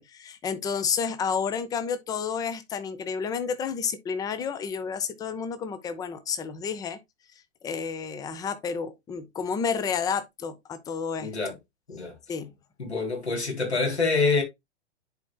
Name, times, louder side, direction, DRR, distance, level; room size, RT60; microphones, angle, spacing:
voice 1, 0.0-7.0 7.6-11.3 12.3-12.5, left 6 dB, 10° left, 0.6 m, -30 dB
voice 2, 11.2-11.5 11.9-12.1 12.8-14.4, left 4 dB, 70° left, 3.3 m, -26 dB
10.5 x 4.3 x 2.2 m
figure-of-eight pair, 105°, 34 cm